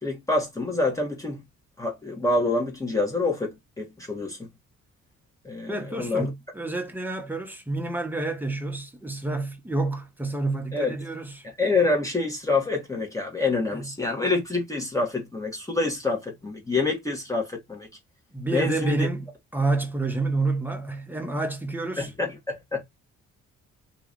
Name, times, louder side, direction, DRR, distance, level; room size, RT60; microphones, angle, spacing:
voice 1, 0.0-1.4 1.8-4.5 5.4-6.3 10.7-10.9 11.6-17.9 18.5-19.1 22.0-22.8, left 3 dB, 10° left, 1.2 m, -27 dB
voice 2, 5.7-11.4 13.7-13.9 18.3-22.1, right 2 dB, 5° right, 1.0 m, -29 dB
2.9 x 2.4 x 3.8 m
cardioid pair, 90°, 30 cm